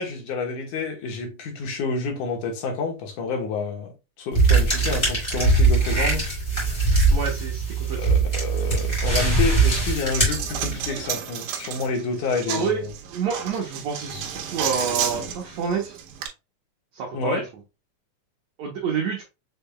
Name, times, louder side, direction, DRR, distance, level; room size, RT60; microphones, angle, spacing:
voice 1, 0.0-3.9 4.2-6.2 8.0-12.9 17.1-17.4, left 4 dB, 70° left, 2.6 m, -29 dB
sound 1, 4.3-11.0, right 3 dB, 10° left, 2.0 m, -21 dB
voice 2, 7.1-8.0 12.5-12.8 13.1-16.0 16.9-17.4 18.6-19.2, right 6 dB, 65° right, 2.0 m, -28 dB
Coin (dropping), 9.6-16.3, right 9 dB, 90° right, 2.4 m, -32 dB
6.7 x 3.4 x 2.2 m
omnidirectional pair, 3.7 m